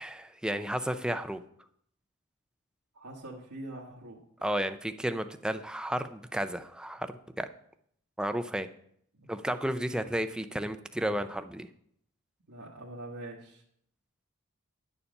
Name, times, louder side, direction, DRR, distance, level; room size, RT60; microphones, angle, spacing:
voice 1, 0.0-1.4 4.4-7.5 8.2-8.7 9.3-11.7, right 1 dB, 5° right, 9 dB, 0.5 m, -32 dB
voice 2, 2.9-4.2 9.1-9.3 12.5-13.6, right 1 dB, 80° right, -6 dB, 1.5 m, -43 dB
9.8 x 7.1 x 5.3 m, 0.68 s
head